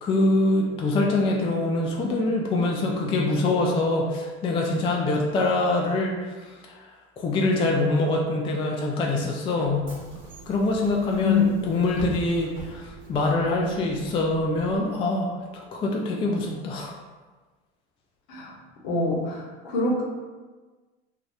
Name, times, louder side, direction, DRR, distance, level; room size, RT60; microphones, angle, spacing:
voice 1, 0.0-6.1 6.7-6.8 7.2-9.9 10.5-16.9, left 2 dB, 15° left, -1 dB, 0.3 m, -24 dB
Bus / Engine, 9.6-14.8, right 3 dB, 35° right, 1.0 m, -43 dB
voice 2, 18.8-20.0, left 4 dB, 60° left, -3 dB, 1.0 m, -24 dB
2.5 x 2.3 x 3.3 m, 1.3 s
hypercardioid pair, 80°, 34 cm